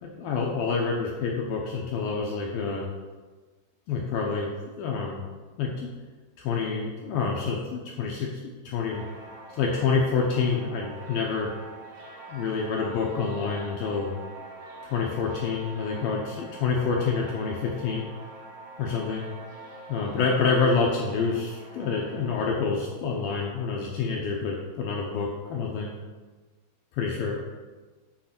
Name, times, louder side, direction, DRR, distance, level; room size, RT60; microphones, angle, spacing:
voice 1, 0.0-2.9 3.9-4.5 4.8-5.2 5.6-5.9 6.4-8.3 8.6-9.0 9.5-11.5 12.3-14.2 14.9-18.1 18.8-19.3 19.9-25.9 26.9-27.4, left 5 dB, 75° left, -1 dB, 2.2 m, -27 dB
sound 1, 8.9-22.4, right 2 dB, 55° right, 1.2 m, -44 dB
7.6 x 6.5 x 5.9 m, 1.3 s
omnidirectional pair, 5.0 m